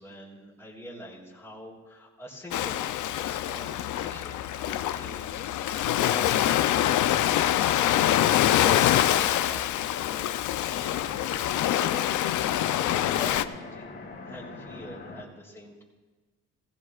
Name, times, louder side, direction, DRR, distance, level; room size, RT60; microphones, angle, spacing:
voice 1, 0.0-7.5 10.0-13.9 14.3-15.8, left 1 dB, 10° left, -9 dB, 3.7 m, -44 dB
Ocean, 2.5-13.4, left 12 dB, 75° left, 0.6 m, -25 dB
sound 1, 10.6-15.2, left 3 dB, 35° left, 3.7 m, -45 dB
18.5 x 15.5 x 2.4 m, 1.3 s
cardioid pair, 90°, 30 cm